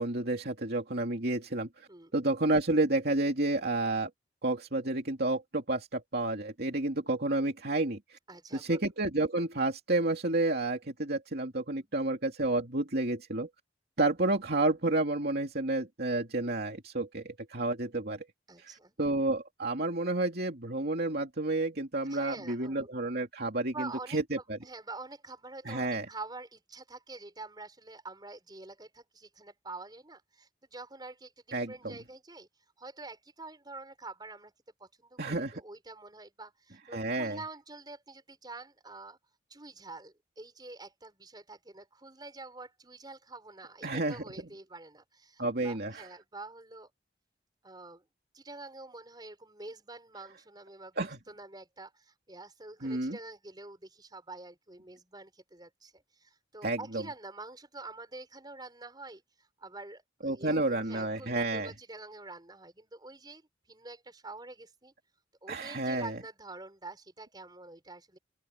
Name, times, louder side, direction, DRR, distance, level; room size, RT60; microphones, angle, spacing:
voice 1, 0.0-4.1 4.4-8.2 8.5-13.5 14.0-18.2 18.6-18.7 19.0-24.6 25.6-26.1 31.5-31.9 35.2-35.6 36.9-37.4 43.8-44.2 45.4-46.0 51.0-51.2 52.8-53.2 56.6-57.0 60.2-61.7 65.5-66.1, right 2 dB, 60° right, 2.8 m, -30 dB
voice 2, 8.3-8.8 11.8-12.1 18.5-19.0 22.0-22.9 23.7-32.5 32.8-34.5 34.8-39.2 39.5-46.9 47.6-48.0 48.3-64.9 65.4-68.2, right 3 dB, 25° right, 6.1 m, -47 dB
open air
head